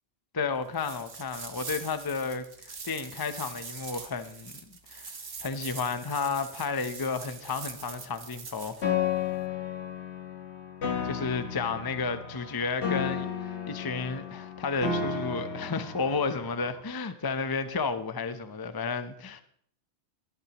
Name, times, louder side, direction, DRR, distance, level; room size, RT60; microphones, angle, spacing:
voice 1, 0.3-4.5 4.9-5.1 5.4-8.9 11.0-19.4, left 4 dB, 25° left, 10 dB, 0.7 m, -32 dB
sound 1, 0.7-8.8, right 5 dB, 55° right, 1.4 m, -43 dB
Piano, 8.8-16.8, left 7 dB, 70° left, 1.6 m, -33 dB
18.0 x 12.0 x 3.0 m, 0.63 s
omnidirectional pair, 1.2 m